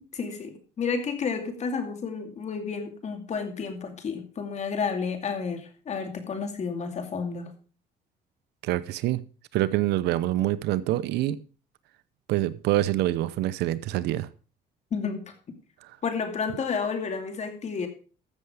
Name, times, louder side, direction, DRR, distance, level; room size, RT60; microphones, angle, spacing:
voice 1, 0.0-7.5 14.9-15.2 16.0-17.9, left 5 dB, 40° left, 2.5 m, -31 dB
voice 2, 8.6-9.2 9.5-11.4 12.3-14.3, right 14 dB, 85° right, 0.7 m, -26 dB
14.0 x 7.0 x 4.9 m
cardioid pair, 110°, 17 cm